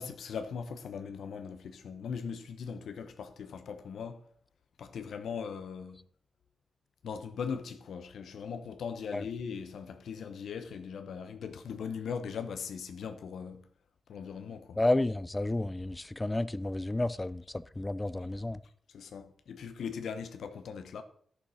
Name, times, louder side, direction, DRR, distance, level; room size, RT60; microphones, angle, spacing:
voice 1, 0.0-4.2 4.8-6.0 7.0-13.6 14.1-14.8 18.9-21.0, left 6 dB, 85° left, 0.9 m, -39 dB
voice 2, 14.8-18.6, left 2 dB, 15° left, 0.4 m, -31 dB
11.0 x 6.8 x 5.6 m
wide cardioid pair, 110°, 0 cm